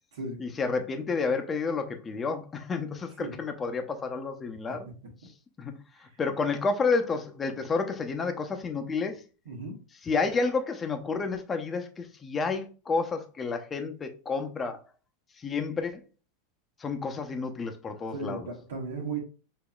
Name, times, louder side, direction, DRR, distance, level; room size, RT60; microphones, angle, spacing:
voice 1, 0.4-4.9 5.6-9.2 10.0-14.8 15.4-16.0 16.8-18.5, left 4 dB, 25° left, 0.8 m, -30 dB
voice 2, 18.1-19.2, right 3 dB, 75° right, 1.4 m, -35 dB
6.2 x 2.8 x 2.4 m
hypercardioid pair, 100°, 0 cm